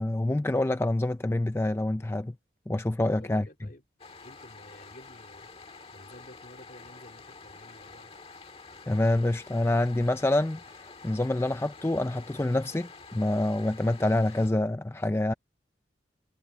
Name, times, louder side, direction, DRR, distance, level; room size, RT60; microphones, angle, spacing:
voice 1, 0.0-2.3 2.7-3.5 8.9-15.3, left 1 dB, 15° left, 0.4 m, -27 dB
voice 2, 3.0-3.8 4.2-8.1, left 1 dB, 50° left, 3.4 m, -52 dB
sound 1, 4.0-14.5, left 4 dB, 35° left, 1.7 m, -48 dB
head